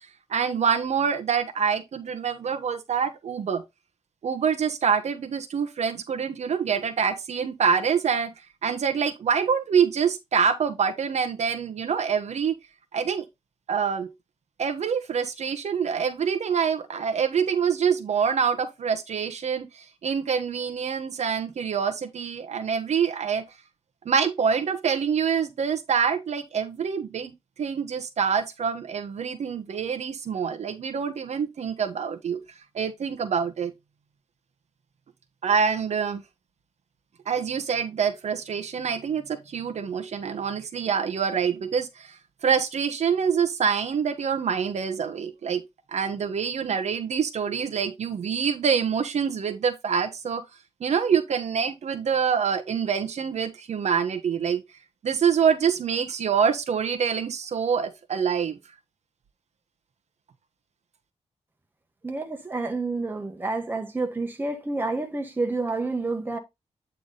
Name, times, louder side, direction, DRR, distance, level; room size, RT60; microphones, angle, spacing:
voice 1, 0.3-3.6 4.2-8.3 8.6-12.5 12.9-13.2 13.7-14.1 14.6-23.4 24.0-32.4 32.7-33.7 35.4-36.2 37.3-45.6 45.9-50.4 50.8-54.6 55.0-58.6, right 6 dB, 70° right, 1.1 m, -26 dB
voice 2, 62.0-66.4, right 3 dB, 15° right, 1.6 m, -29 dB
8.9 x 3.6 x 4.0 m
wide cardioid pair, 140°, 12 cm